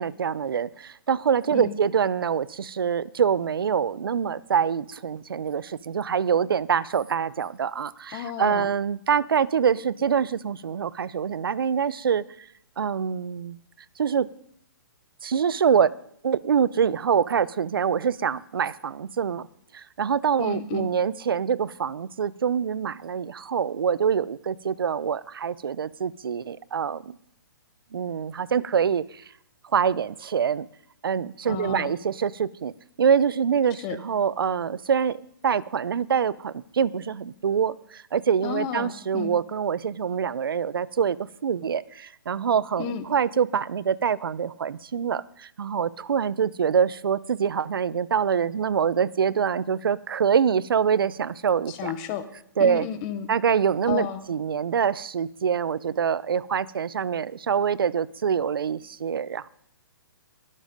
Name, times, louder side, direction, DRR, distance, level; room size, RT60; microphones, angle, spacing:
voice 1, 0.0-12.5 12.8-13.6 14.0-14.3 15.2-15.9 16.2-19.5 19.7-27.2 27.9-29.2 29.7-30.7 31.0-32.7 33.0-51.9 52.6-52.9 53.3-59.5, right 7 dB, 85° right, 20 dB, 0.6 m, -25 dB
voice 2, 8.1-8.7 20.4-20.9 31.5-31.9 33.8-34.0 38.4-39.3 42.8-43.1 51.7-52.2 52.6-53.3 53.9-54.2, left 10 dB, 20° left, 11 dB, 1.0 m, -32 dB
21.5 x 7.5 x 5.2 m, 0.70 s
hypercardioid pair, 165°, 12 cm